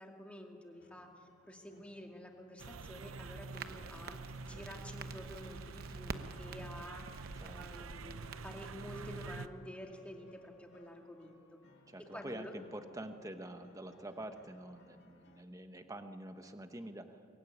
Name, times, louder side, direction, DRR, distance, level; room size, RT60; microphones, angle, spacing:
voice 1, 0.0-11.4 12.0-12.5, left 1 dB, 5° left, 1 dB, 2.2 m, -50 dB
sound 1, 0.7-15.4, left 1 dB, 55° left, 2.6 m, -65 dB
sound 2, 2.6-9.5, right 4 dB, 80° right, 0.7 m, -47 dB
Crackle, 3.5-9.3, right 3 dB, 45° right, 1.0 m, -49 dB
voice 2, 11.9-17.3, right 1 dB, 15° right, 7 dB, 1.2 m, -47 dB
23.5 x 22.5 x 9.7 m, 2.6 s
head